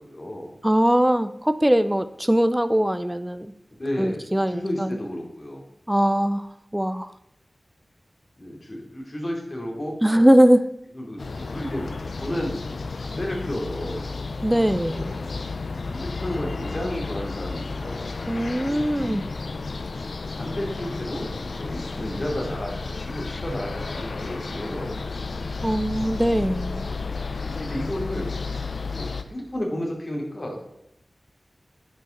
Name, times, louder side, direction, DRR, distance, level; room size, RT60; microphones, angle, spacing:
voice 1, 0.0-0.6 3.8-5.6 8.4-10.0 11.0-12.6 13.0-14.1 14.8-15.1 15.8-18.1 18.9-19.2 20.3-25.5 27.4-30.6, left 1 dB, 40° left, 0 dB, 2.8 m, -32 dB
voice 2, 0.6-3.5 4.0-5.0 5.9-7.1 10.0-10.7 14.4-15.1 18.3-19.2 25.6-26.9, equal, 10° right, 12 dB, 0.4 m, -21 dB
sound 1, 11.2-29.2, left 4 dB, 80° left, 0.5 m, -32 dB
10.0 x 5.6 x 3.9 m, 0.81 s
wide cardioid pair, 50°, 0 cm